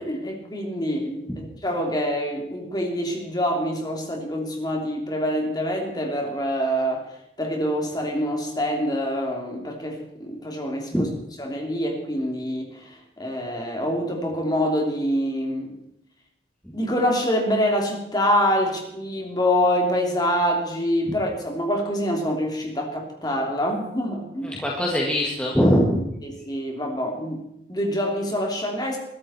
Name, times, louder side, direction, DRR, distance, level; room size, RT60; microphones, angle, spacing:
voice 1, 0.0-7.0 7.4-11.1 11.4-15.8 16.7-24.5 26.2-27.4 27.7-29.0, equal, 20° left, 1 dB, 3.1 m, -25 dB
voice 2, 24.4-26.1, equal, 5° left, -3 dB, 2.0 m, -22 dB
22.0 x 13.0 x 4.4 m, 0.78 s
head